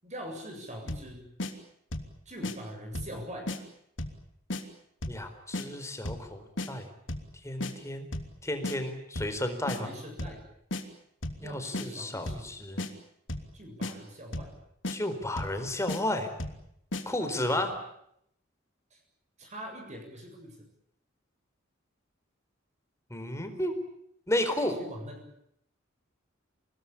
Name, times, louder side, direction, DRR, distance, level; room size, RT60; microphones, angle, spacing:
voice 1, 0.0-1.3 2.3-3.5 9.8-10.4 11.4-12.5 13.5-14.5 17.2-17.6 18.9-19.0 19.4-20.6 24.6-25.3, equal, 35° right, 2 dB, 7.5 m, -43 dB
sound 1, 0.9-1.1 1.4-1.5 1.9-2.1 2.4-2.6 2.9-3.2 3.5-3.6 4.0-4.2 4.5-4.6 5.0-5.2 5.5-5.7 6.1-6.3 6.6-6.7 7.1-7.3 7.6-7.7 8.1-8.3 8.6-8.8 9.2-9.4 9.7-9.8 10.2-10.4 10.7-10.8 11.2-11.4 11.7-11.9 12.3-12.5 12.8-12.9 13.3-13.5 13.8-13.9 14.3-14.6 14.8-15.0 15.4-15.6 15.9-16.0 16.4-16.6 16.9-17.0, left 1 dB, 65° left, 3.1 m, -34 dB
voice 2, 5.1-6.9 7.4-8.1 8.4-9.9 11.4-12.8 14.9-16.3 17.1-17.7 23.1-23.7 24.3-24.8, left 1 dB, 15° left, 7 dB, 4.3 m, -32 dB
28.5 x 20.0 x 8.7 m, 0.73 s
head